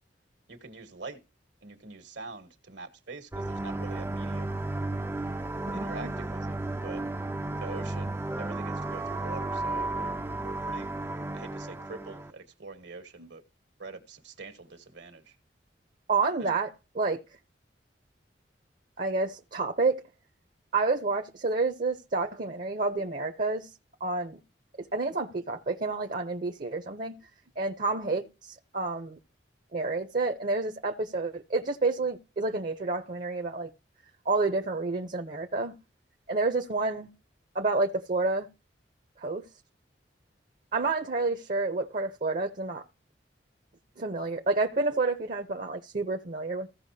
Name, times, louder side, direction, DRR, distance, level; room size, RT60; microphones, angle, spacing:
voice 1, 0.5-1.2 1.6-4.6 5.7-7.0 7.6-10.9 11.3-13.4 13.8-15.3 16.4-16.5, right 3 dB, 75° right, 1.8 m, -45 dB
sound 1, 3.3-12.3, right 2 dB, 15° right, 0.5 m, -33 dB
voice 2, 5.7-6.1 13.2-13.3 16.1-16.7 16.9-17.2 19.0-20.0 20.7-23.7 24.0-24.4 24.8-27.2 27.6-29.2 29.7-33.7 34.2-35.7 36.3-37.1 37.5-38.5 39.2-39.5 40.7-42.8 44.0-46.7, right 3 dB, 50° right, 0.9 m, -29 dB
16.0 x 5.7 x 2.8 m
head